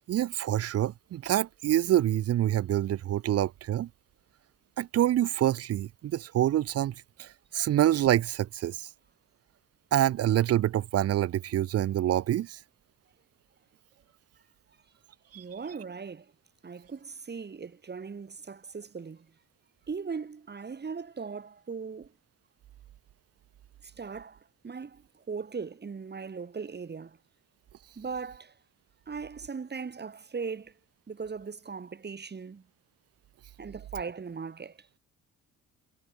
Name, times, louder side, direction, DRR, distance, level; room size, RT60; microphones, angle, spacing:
voice 1, 0.1-3.9 4.8-8.9 9.9-12.6 15.3-15.4, right 12 dB, 55° right, 0.6 m, -26 dB
voice 2, 15.3-16.3 16.6-19.3 19.9-22.1 23.8-27.2 27.9-28.5 29.1-30.7 31.1-32.6 33.6-34.8, right 5 dB, 35° right, 3.5 m, -39 dB
cardioid pair, 90°, 30 cm